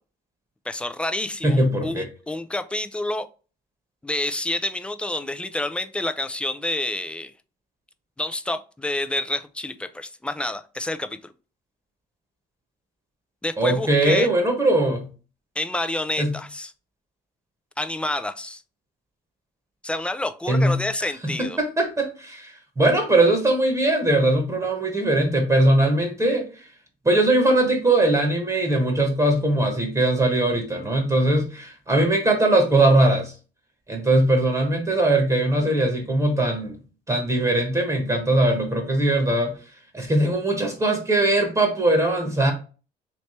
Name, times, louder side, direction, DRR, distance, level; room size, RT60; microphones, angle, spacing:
voice 1, 0.7-3.3 4.0-7.3 8.2-11.3 13.4-14.3 15.6-16.7 17.8-18.6 19.8-21.6, left 1 dB, 5° left, 0.4 m, -28 dB
voice 2, 1.4-2.1 13.6-15.1 16.2-16.3 20.5-20.8 21.2-26.5 27.0-33.3 33.9-36.8 37.1-39.6 39.9-42.5, right 1 dB, 20° right, 1.1 m, -20 dB
3.3 x 3.0 x 4.2 m
cardioid pair, 110°, 17 cm